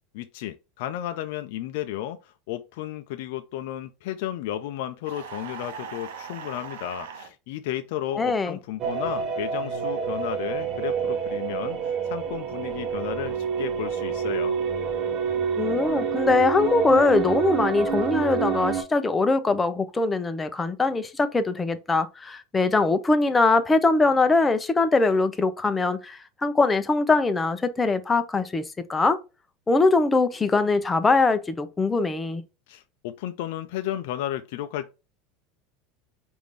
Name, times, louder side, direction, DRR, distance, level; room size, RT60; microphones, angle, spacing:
voice 1, 0.1-14.6 32.7-34.9, left 12 dB, 70° left, 0.4 m, -33 dB
sound 1, 5.1-7.3, right 7 dB, 90° right, 0.7 m, -39 dB
voice 2, 8.1-8.6 15.6-29.2 29.7-32.4, left 3 dB, 15° left, 0.6 m, -22 dB
sound 2, 8.8-18.8, right 6 dB, 40° right, 0.9 m, -28 dB
5.0 x 2.6 x 3.3 m
supercardioid pair, 120°, 0 cm